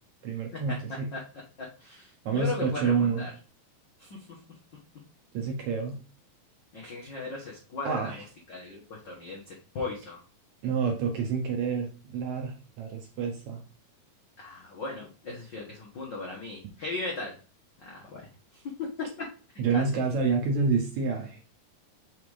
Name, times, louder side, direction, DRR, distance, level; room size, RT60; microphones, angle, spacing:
voice 1, 0.2-1.1 2.3-3.3 5.3-6.0 7.9-8.2 10.6-13.6 19.6-21.4, right 5 dB, 70° right, 2 dB, 1.9 m, -28 dB
voice 2, 1.8-3.3 4.0-4.4 6.7-8.1 8.5-10.2 14.4-17.3 17.8-18.3 18.5-18.6 19.7-19.8, left 3 dB, 80° left, -2 dB, 1.0 m, -37 dB
5.9 x 3.6 x 4.8 m, 0.37 s
omnidirectional pair, 4.1 m